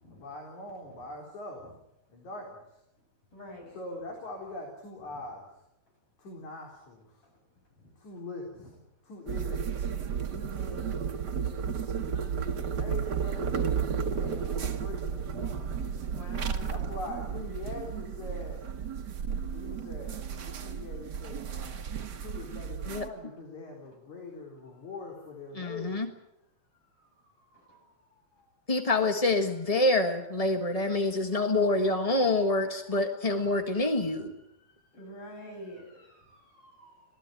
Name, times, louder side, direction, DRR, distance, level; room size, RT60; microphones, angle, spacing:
voice 1, 0.1-1.7 2.1-2.8 3.7-5.5 6.2-7.2 8.0-8.7 9.0-9.8 10.3-11.2 11.6-12.2 12.8-15.6 16.7-18.7 19.5-26.0 31.7-32.4, left 2 dB, 80° left, 0 dB, 5.4 m, -43 dB
voice 2, 3.3-3.8 7.8-7.9 12.7-13.0 14.3-14.4 15.6-15.7 16.1-16.9 27.5-27.8 29.0-29.2 34.1-34.3 34.6-37.1, equal, 50° left, 2 dB, 8.6 m, -48 dB
sound 1, 9.3-23.1, right 7 dB, 45° right, 1.6 m, -33 dB
voice 3, 25.5-26.1 28.7-34.3, left 2 dB, 30° left, 5 dB, 0.7 m, -26 dB
26.5 x 17.5 x 9.1 m, 0.87 s
omnidirectional pair, 3.3 m